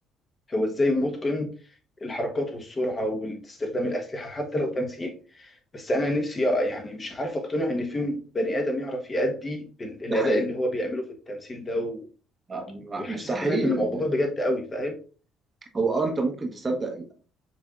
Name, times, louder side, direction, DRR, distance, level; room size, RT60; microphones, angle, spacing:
voice 1, 0.5-1.5 2.0-12.0 13.0-15.0, left 1 dB, 30° left, 3 dB, 1.2 m, -28 dB
voice 2, 10.1-10.4 12.5-14.0 15.7-17.1, right 3 dB, 30° right, 3 dB, 1.1 m, -28 dB
5.9 x 3.4 x 2.4 m, 0.38 s
supercardioid pair, 75°, 0 cm